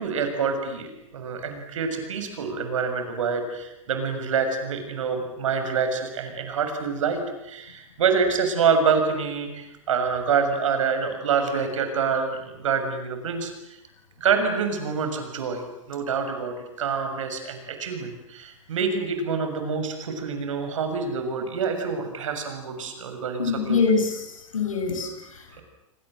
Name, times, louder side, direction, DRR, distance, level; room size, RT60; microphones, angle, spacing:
voice 1, 0.0-13.8 14.2-15.6 15.9-23.8, right 5 dB, 70° right, 7 dB, 6.9 m, -26 dB
voice 2, 23.4-25.6, left 5 dB, 80° left, 5 dB, 6.9 m, -25 dB
27.0 x 27.0 x 7.8 m, 0.86 s
hypercardioid pair, 95°, 17 cm